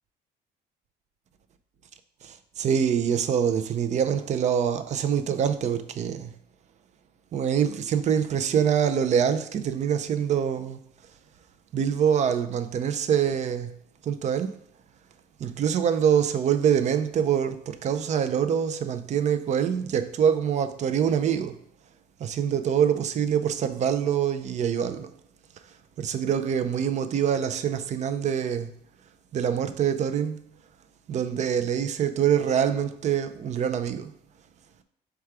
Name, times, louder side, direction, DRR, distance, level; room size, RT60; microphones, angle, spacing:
voice 1, 2.2-6.3 7.3-10.8 11.7-13.7 14.0-14.5 15.4-21.5 22.2-25.1 26.0-28.7 29.3-30.4 31.1-34.1, right 8 dB, 45° right, 0.4 m, -25 dB
4.6 x 2.3 x 4.7 m
cardioid pair, 110°, 17 cm